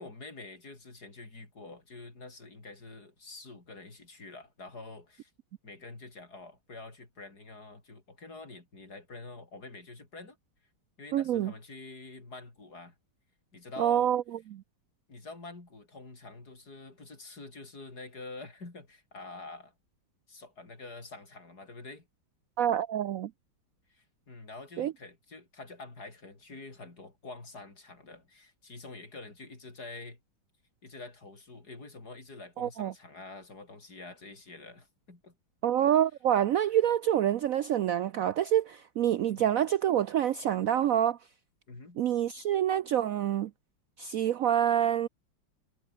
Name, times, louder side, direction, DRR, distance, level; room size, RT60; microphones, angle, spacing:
voice 1, 0.0-5.3 5.6-10.4 11.0-13.0 13.5-14.1 15.1-19.7 20.3-22.1 23.9-30.2 30.8-35.4 39.3-39.5 41.7-42.0, left 3 dB, 50° left, 5.2 m, -47 dB
voice 2, 11.1-11.5 13.8-14.2 14.5-14.6 22.6-23.3 24.8-24.9 32.6-32.9 35.6-41.2 42.0-43.5 44.0-45.1, right 10 dB, 90° right, 0.7 m, -27 dB
omnidirectional pair, 2.2 m